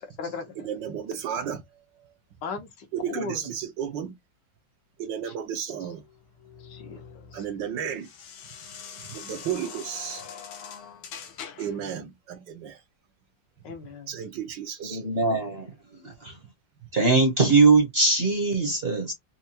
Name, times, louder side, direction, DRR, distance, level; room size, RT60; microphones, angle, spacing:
voice 1, 0.0-0.7 2.4-3.5 5.2-5.3 5.8-5.9 6.6-7.5 11.8-12.0 13.6-14.1, left 4 dB, 70° left, 1.5 m, -38 dB
voice 2, 0.6-2.1 2.9-4.1 5.0-6.0 7.3-8.1 9.1-10.2 11.6-12.8 14.1-15.0, right 8 dB, 70° right, 1.4 m, -33 dB
sound 1, 6.0-11.9, left 7 dB, 85° left, 1.6 m, -43 dB
voice 3, 14.8-15.7 16.0-16.4 16.9-19.1, right 3 dB, 40° right, 0.9 m, -21 dB
4.4 x 2.4 x 2.8 m
omnidirectional pair, 2.1 m